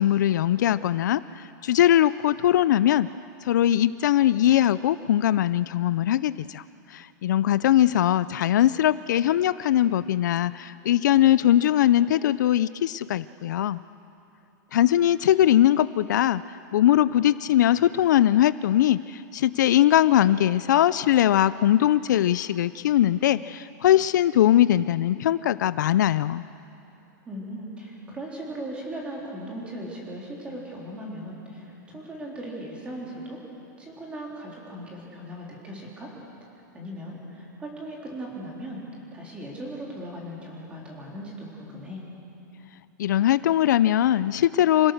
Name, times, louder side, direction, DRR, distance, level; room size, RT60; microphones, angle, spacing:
voice 1, 0.0-3.1 3.4-6.6 6.9-13.8 14.7-26.4 43.0-44.9, left 12 dB, 65° left, 16 dB, 0.4 m, -21 dB
voice 2, 27.3-33.4 33.8-36.1 36.7-38.8 39.1-42.0, right 1 dB, 10° right, -3 dB, 3.7 m, -38 dB
27.0 x 17.0 x 6.5 m, 2.8 s
supercardioid pair, 165°, 10 cm